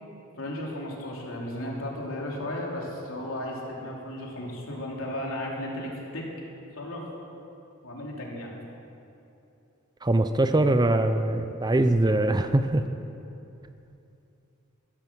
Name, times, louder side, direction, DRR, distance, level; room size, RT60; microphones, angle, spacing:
voice 1, 0.4-6.2 6.8-7.0 7.8-8.5, left 1 dB, 75° left, -2 dB, 3.2 m, -34 dB
voice 2, 10.0-12.8, right 1 dB, 20° right, 9 dB, 0.6 m, -22 dB
15.0 x 14.5 x 6.2 m, 2.8 s
head